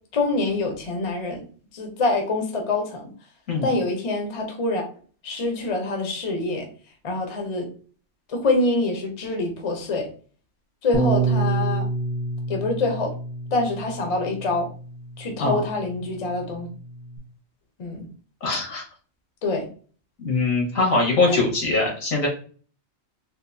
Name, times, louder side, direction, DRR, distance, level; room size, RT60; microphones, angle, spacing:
voice 1, 0.1-1.4 1.7-3.1 3.6-4.9 5.2-6.7 7.0-7.7 8.3-10.1 10.8-11.9 12.5-13.1 13.5-14.7 15.2-16.7 17.8-18.1 19.4-19.7 21.3-21.4, left 2 dB, 35° left, 2 dB, 0.6 m, -25 dB
Bass guitar, 10.9-17.2, right 3 dB, 30° right, 0.9 m, -28 dB
voice 2, 18.4-18.8 20.2-22.3, left 3 dB, 85° left, -1 dB, 1.7 m, -22 dB
3.6 x 2.6 x 2.6 m, 0.41 s
omnidirectional pair, 1.4 m